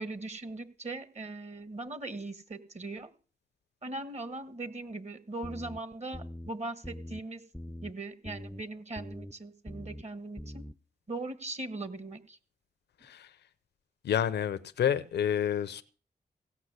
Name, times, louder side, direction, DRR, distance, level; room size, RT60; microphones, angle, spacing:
voice 1, 0.0-3.1 3.8-7.4 7.8-10.6 11.1-12.4, right 2 dB, 40° right, 1.6 m, -40 dB
sound 1, 5.4-5.8 6.1-6.5 6.8-7.2 7.5-7.9 8.2-8.6 9.0-9.3 9.7-10.0 10.4-10.7, left 1 dB, 5° left, 0.5 m, -42 dB
voice 2, 13.0-13.4 14.0-15.8, left 9 dB, 80° left, 0.7 m, -29 dB
16.5 x 5.6 x 8.1 m
supercardioid pair, 45°, 17 cm